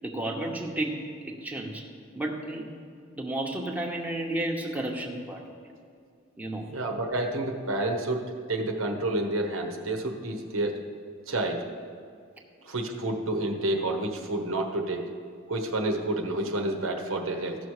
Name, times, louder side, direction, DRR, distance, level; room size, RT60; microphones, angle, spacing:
voice 1, 0.0-1.9 2.1-2.7 3.1-5.4 6.4-6.7, right 1 dB, 10° right, 0 dB, 0.9 m, -32 dB
voice 2, 6.5-8.2 8.5-10.8 11.3-11.7 12.6-15.0 15.5-17.6, right 2 dB, 90° right, 3 dB, 1.1 m, -29 dB
14.5 x 6.1 x 4.8 m, 2.2 s
head